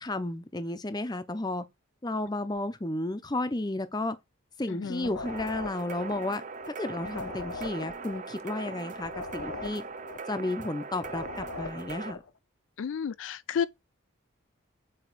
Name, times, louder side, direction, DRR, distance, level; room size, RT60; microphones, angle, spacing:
voice 1, 0.0-1.6 2.0-4.2 4.6-6.4 6.7-9.8 10.3-12.2, left 2 dB, 20° left, 0.6 m, -32 dB
voice 2, 4.7-5.1 12.8-13.7, left 7 dB, 65° left, 0.3 m, -31 dB
sound 1, 4.9-12.3, left 4 dB, 85° left, 1.0 m, -42 dB
sound 2, 5.3-12.1, right 4 dB, 35° right, 0.5 m, -40 dB
8.3 x 3.0 x 4.5 m
head